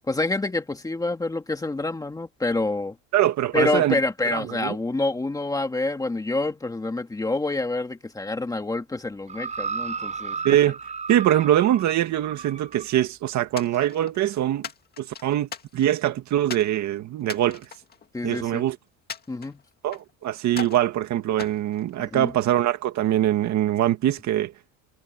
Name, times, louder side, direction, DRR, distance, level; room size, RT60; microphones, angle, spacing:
voice 1, 0.1-3.0 3.5-10.4 18.1-18.6 19.3-19.6 22.0-22.3, left 2 dB, 10° left, 1.9 m, -27 dB
voice 2, 3.1-4.0 4.3-4.8 10.4-10.8 11.1-14.7 15.0-17.7 18.2-18.8 19.8-24.5, right 12 dB, 45° right, 2.0 m, -23 dB
sound 1, 9.3-12.9 13.7-13.8, right 5 dB, 20° right, 6.3 m, -34 dB
sound 2, 13.6-14.2 14.6-16.0 16.5-16.7 17.2-18.6 19.1-20.1 20.5-20.9 21.4-22.4, left 6 dB, 25° left, 2.1 m, -39 dB
cardioid pair, 170°, 38 cm